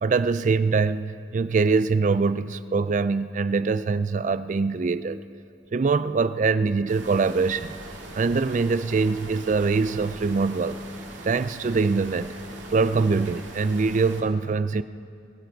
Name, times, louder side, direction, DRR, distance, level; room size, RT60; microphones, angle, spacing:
voice 1, 0.0-5.2 5.7-7.7 8.1-10.8 11.2-12.3 12.7-14.8, right 4 dB, 40° right, 14 dB, 0.4 m, -23 dB
sound 1, 6.9-14.2, right 2 dB, 85° right, 2.2 m, -41 dB
21.0 x 16.0 x 4.0 m, 2.5 s
head